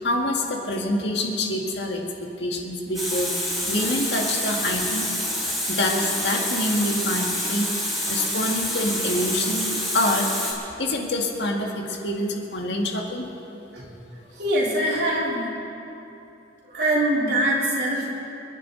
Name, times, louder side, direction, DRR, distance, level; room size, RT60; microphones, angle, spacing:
voice 1, 0.0-5.1 5.5-7.7 8.1-10.3 10.8-13.3, left 1 dB, 65° left, 0 dB, 1.9 m, -26 dB
Water tap faucet, 2.9-10.5, equal, ahead, 3.2 m, -27 dB
voice 2, 13.6-13.9 14.3-15.5 16.6-18.1, right 1 dB, 60° right, -4 dB, 3.3 m, -23 dB
29.5 x 10.5 x 3.9 m, 2.9 s
head